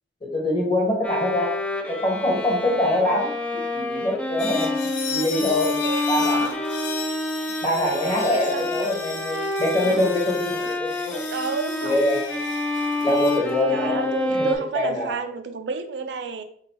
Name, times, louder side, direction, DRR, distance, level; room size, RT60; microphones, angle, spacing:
voice 1, 0.3-1.5 1.9-4.7 5.1-5.8 6.1-6.6 7.6-11.2 11.8-12.3 13.0-15.2, left 1 dB, 25° left, 1.1 m, -24 dB
Bowed string instrument, 1.0-14.5, left 2 dB, 5° left, 0.3 m, -28 dB
sound 1, 4.4-13.6, left 6 dB, 85° left, 0.7 m, -36 dB
voice 2, 5.6-6.6 7.9-8.7 9.8-10.1 10.6-10.7 11.3-12.0 13.7-16.4, right 5 dB, 70° right, 0.4 m, -31 dB
3.9 x 3.8 x 2.9 m
head